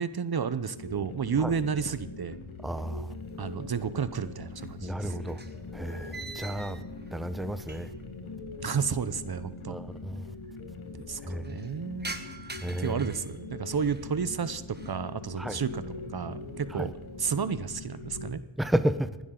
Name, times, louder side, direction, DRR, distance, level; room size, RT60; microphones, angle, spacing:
voice 1, 0.0-2.4 3.4-5.2 8.6-9.8 11.0-12.2 12.7-15.8 16.1-16.9 17.2-18.4, right 6 dB, 50° right, 0.8 m, -31 dB
sound 1, 0.7-18.3, left 3 dB, 90° left, 1.6 m, -42 dB
voice 2, 2.6-3.1 4.8-5.4 5.7-6.8 7.1-7.9 9.7-10.3 11.2-11.5 12.6-13.0 15.4-15.6 16.8-16.9 18.6-19.2, right 1 dB, ahead, 0.9 m, -32 dB
sound 2, 2.9-3.8 4.0-8.1 8.4-8.5 9.4-9.5 9.6-9.7 10.0-10.5 10.9-14.1 14.6-15.1 15.5-15.9 16.3-17.2, right 3 dB, 20° right, 1.5 m, -46 dB
20.0 x 12.0 x 3.8 m
cardioid pair, 65°, 48 cm